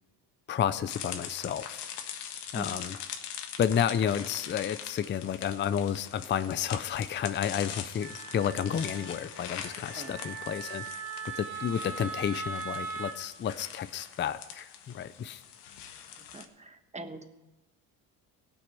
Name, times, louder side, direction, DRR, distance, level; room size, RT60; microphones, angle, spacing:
voice 1, 0.5-1.8 2.5-3.0 3.6-10.8 11.4-15.4, left 9 dB, 30° left, 13 dB, 0.5 m, -31 dB
sound 1, 0.9-16.5, left 8 dB, 75° left, 1.5 m, -42 dB
Wind instrument woodwind instrument, 8.0-13.2, right 5 dB, 35° right, 1.7 m, -40 dB
voice 2, 16.2-17.2, right 2 dB, 15° right, 8 dB, 1.2 m, -43 dB
17.0 x 6.2 x 8.2 m, 1.1 s
cardioid pair, 95°, 40 cm